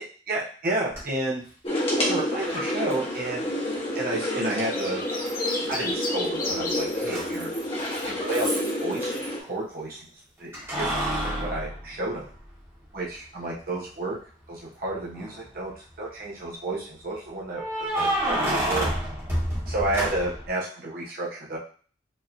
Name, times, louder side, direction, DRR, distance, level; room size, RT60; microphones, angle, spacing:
voice 1, 0.3-1.4 2.0-3.5 3.9-5.0 5.7-7.5 8.0-10.1 10.4-10.5 10.8-12.3 12.9-14.2 14.5-18.9 19.7-21.6, right 2 dB, 50° right, -4 dB, 1.0 m, -31 dB
Keys jangling, 0.9-1.0 2.9-3.0 5.3-5.8 6.1-9.3 10.5-12.7 13.1-13.2 15.0-15.6 17.5-20.5, right 1 dB, 15° right, 1.3 m, -29 dB
sound 1, 1.6-9.4, left 1 dB, 30° left, 1.2 m, -29 dB
sound 2, 4.2-6.8 8.1-8.5, left 2 dB, 50° left, 0.8 m, -32 dB
4.8 x 2.9 x 2.6 m, 0.42 s
head